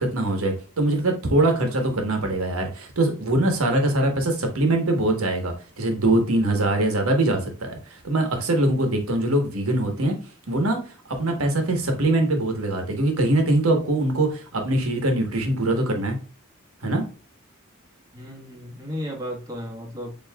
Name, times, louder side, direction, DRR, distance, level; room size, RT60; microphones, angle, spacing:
voice 1, 0.0-10.2 10.5-10.8 11.1-16.2 16.8-17.0, right 1 dB, 85° right, 4 dB, 1.3 m, -22 dB
voice 2, 18.1-20.1, equal, 15° right, -2 dB, 1.4 m, -34 dB
7.3 x 3.0 x 2.3 m, 0.38 s
head